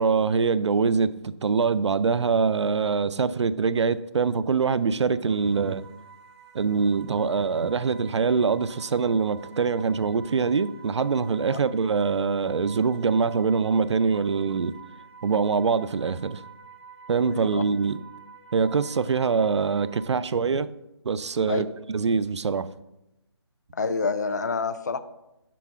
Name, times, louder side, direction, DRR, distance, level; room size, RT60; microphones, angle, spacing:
voice 1, 0.0-5.8 6.5-14.7 15.2-16.4 17.1-18.0 18.5-20.7 21.1-22.7, right 5 dB, 85° right, 0.4 m, -24 dB
sound 1, 5.3-20.1, right 6 dB, 70° right, 0.9 m, -48 dB
voice 2, 17.3-17.6 21.5-21.6 23.8-25.0, left 4 dB, 40° left, 0.4 m, -27 dB
6.1 x 4.1 x 5.7 m
hypercardioid pair, 170°, 14 cm